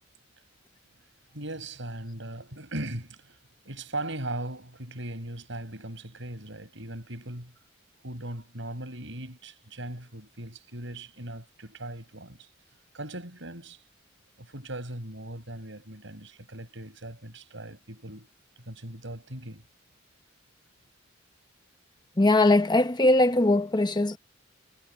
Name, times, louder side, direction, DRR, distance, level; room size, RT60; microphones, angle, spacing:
voice 1, 1.3-3.4 3.7-7.5 8.0-12.5 12.9-13.8 14.4-18.3 18.6-19.6, right 1 dB, 65° right, 7.3 m, -39 dB
voice 2, 22.2-24.2, left 2 dB, 20° left, 0.9 m, -21 dB
head